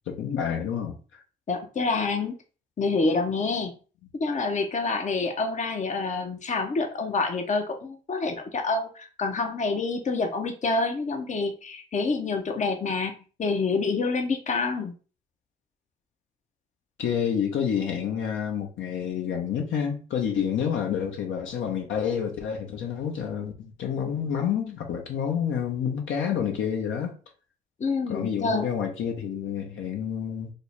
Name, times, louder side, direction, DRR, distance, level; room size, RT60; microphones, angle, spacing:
voice 1, 0.1-1.0 17.0-27.1 28.1-30.5, left 8 dB, 70° left, 0.8 m, -28 dB
voice 2, 1.5-2.3 2.8-3.7 4.2-13.1 13.4-14.9 27.8-28.7, left 3 dB, 35° left, 0.6 m, -27 dB
4.1 x 2.0 x 3.2 m
hypercardioid pair, 40°, 21 cm